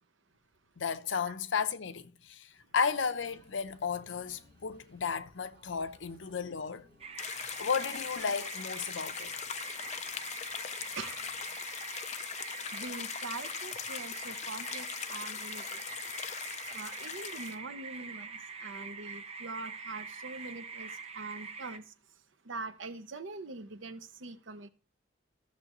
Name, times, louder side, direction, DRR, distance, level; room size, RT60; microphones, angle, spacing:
voice 1, 0.8-2.5 2.7-6.8 7.2-9.3, left 6 dB, 75° left, 0.7 m, -34 dB
sound 1, 3.1-11.4, right 1 dB, 55° right, 5.0 m, -65 dB
sound 2, 7.0-21.8, right 5 dB, 30° right, 0.7 m, -44 dB
sound 3, 7.2-17.6, left 8 dB, 35° left, 0.5 m, -40 dB
voice 2, 12.7-15.8 16.7-21.9 22.4-24.7, right 3 dB, 80° right, 0.8 m, -43 dB
14.5 x 6.7 x 3.0 m
head